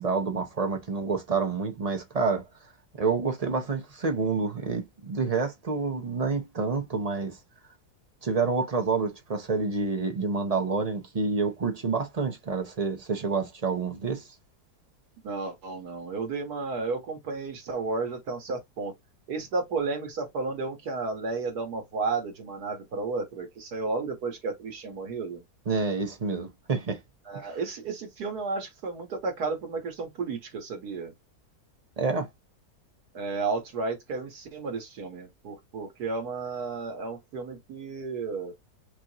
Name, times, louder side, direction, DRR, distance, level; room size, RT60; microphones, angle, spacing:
voice 1, 0.0-2.4 3.0-7.4 8.2-14.3 25.7-27.0 27.3-27.6 32.0-32.3, right 4 dB, 40° right, 0.6 m, -28 dB
voice 2, 15.2-18.9 19.3-25.4 27.3-31.1 33.1-38.5, right 4 dB, 75° right, 2.0 m, -32 dB
6.0 x 2.5 x 2.9 m
omnidirectional pair, 1.7 m